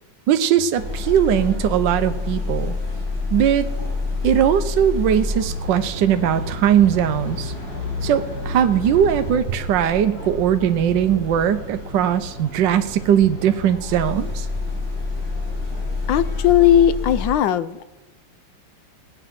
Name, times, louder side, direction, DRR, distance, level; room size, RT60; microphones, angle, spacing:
voice 1, 0.3-2.8 3.3-3.6 4.2-7.5 8.0-14.5, right 9 dB, 70° right, 9 dB, 1.3 m, -19 dB
sound 1, 0.7-17.3, left 3 dB, 50° left, 5.2 m, -28 dB
voice 2, 16.1-17.8, left 10 dB, 70° left, 14 dB, 1.2 m, -17 dB
18.0 x 9.1 x 5.8 m, 1.0 s
omnidirectional pair, 2.3 m